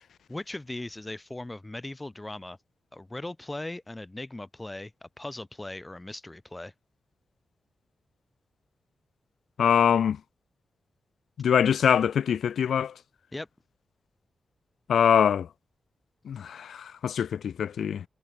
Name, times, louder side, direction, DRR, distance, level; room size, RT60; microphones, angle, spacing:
voice 1, 0.3-2.6 2.9-6.7 13.3-13.5, left 2 dB, 15° left, 6.0 m, -38 dB
voice 2, 9.6-10.2 11.4-12.9 14.9-15.5 16.2-18.0, left 8 dB, 90° left, 0.5 m, -23 dB
wide cardioid pair, 150°, 0 cm